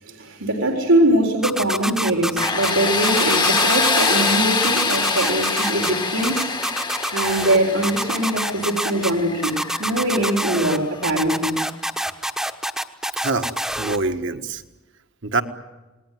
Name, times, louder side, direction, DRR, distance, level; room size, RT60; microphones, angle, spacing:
voice 1, 0.0-6.5 7.1-11.6, right 1 dB, 85° right, 1 dB, 4.0 m, -22 dB
sound 1, 1.4-2.7 3.0-4.4 4.6-5.9 6.2-7.6 7.8-9.1 9.4-10.8 11.0-14.0, right 1 dB, ahead, 1.1 m, -25 dB
Tools, 2.4-11.1, left 4 dB, 20° left, 1.2 m, -24 dB
voice 2, 13.1-14.6 15.2-15.4, right 3 dB, 60° right, 8 dB, 1.6 m, -25 dB
28.5 x 19.5 x 9.4 m, 1.1 s
head